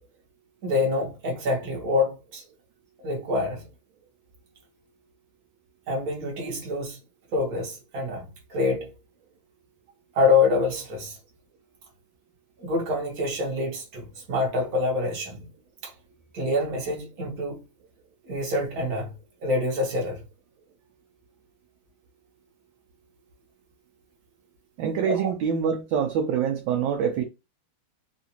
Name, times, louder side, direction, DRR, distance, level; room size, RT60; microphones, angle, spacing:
voice 1, 0.6-2.4 3.0-3.6 5.9-7.0 7.3-8.9 10.1-11.2 12.6-15.5 15.8-15.9 16.3-17.6 18.3-19.1 19.4-20.2, left 3 dB, 50° right, 1.4 m, -26 dB
voice 2, 24.8-27.2, right 7 dB, 75° right, 1.2 m, -25 dB
3.7 x 2.4 x 2.8 m
omnidirectional pair, 2.3 m